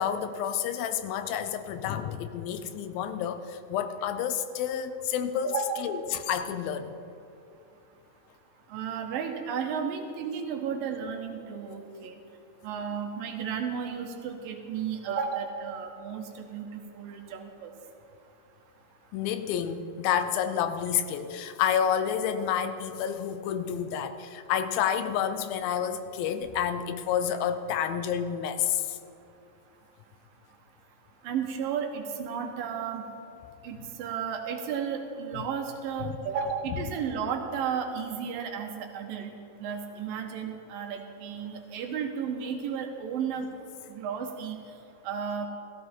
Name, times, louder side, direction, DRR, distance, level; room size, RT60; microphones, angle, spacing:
voice 1, 0.0-5.5 5.8-6.9 19.1-29.0 36.0-36.1, left 8 dB, 85° left, 10 dB, 2.5 m, -29 dB
voice 2, 5.4-5.8 8.7-12.2 12.6-17.7 31.2-33.0 33.6-39.3 39.6-43.5 43.9-44.6 45.0-45.5, right 7 dB, 75° right, 4 dB, 2.9 m, -33 dB
16.0 x 14.5 x 4.4 m, 2.7 s
omnidirectional pair, 4.2 m